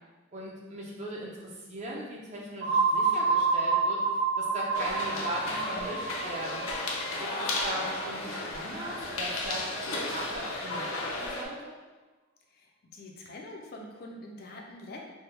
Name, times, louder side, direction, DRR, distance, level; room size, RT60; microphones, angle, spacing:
voice 1, 0.3-4.0 4.4-6.7 7.2-9.7 10.1-11.7, right 1 dB, 35° right, -3 dB, 0.6 m, -39 dB
sound 1, 2.6-8.3, right 4 dB, 50° right, 1.0 m, -28 dB
sound 2, 4.7-11.4, left 2 dB, 90° left, 0.6 m, -34 dB
voice 2, 12.5-15.0, left 1 dB, 45° left, 0 dB, 0.4 m, -45 dB
3.4 x 2.2 x 4.3 m, 1.3 s
head